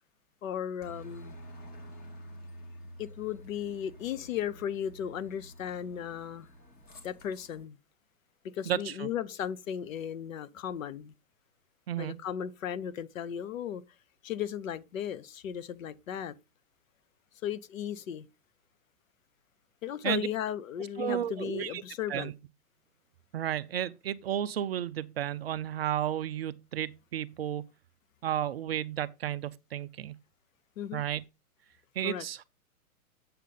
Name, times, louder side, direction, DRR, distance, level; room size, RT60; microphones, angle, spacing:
voice 1, 0.4-1.4 3.0-6.5 7.0-7.8 8.4-11.1 12.0-13.8 14.2-16.4 17.4-18.3 19.8-22.3 30.8-31.0 32.0-32.3, left 9 dB, 60° left, 1.0 m, -36 dB
Aircraft, 0.8-7.6, equal, 20° left, 1.9 m, -49 dB
voice 2, 8.7-9.1 11.9-12.2 20.0-20.3 21.0-21.8 22.1-22.3 23.3-27.7 28.2-30.1 30.9-31.2 32.0-32.4, right 11 dB, 45° right, 0.5 m, -32 dB
8.3 x 6.8 x 3.8 m
hypercardioid pair, 140°, 45 cm